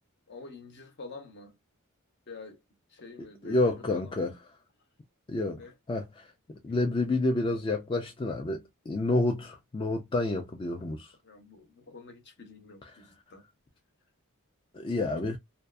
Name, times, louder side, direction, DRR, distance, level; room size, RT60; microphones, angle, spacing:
voice 1, 0.3-1.5 2.3-2.6 2.9-4.1 5.5-5.7 6.7-6.8 11.2-13.4, left 3 dB, 55° left, 0.7 m, -47 dB
voice 2, 3.2-4.4 5.3-5.6 5.9-11.1 12.8-13.0 14.7-15.4, left 2 dB, 25° left, 0.3 m, -29 dB
2.6 x 2.3 x 2.2 m
head